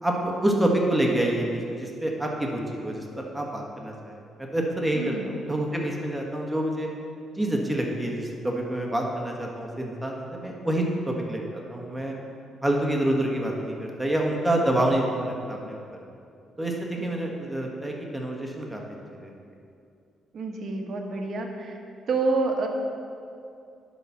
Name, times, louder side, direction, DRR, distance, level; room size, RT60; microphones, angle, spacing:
voice 1, 0.0-4.2 4.5-6.9 7.4-12.1 12.6-15.8 16.6-18.8 19.2-19.3, right 1 dB, 10° right, 0 dB, 1.4 m, -27 dB
voice 2, 4.9-5.3 17.0-17.1 20.3-21.7 22.1-22.7, right 3 dB, 55° right, 3 dB, 1.1 m, -28 dB
10.5 x 4.2 x 6.0 m, 2.5 s
cardioid pair, 90°, 0 cm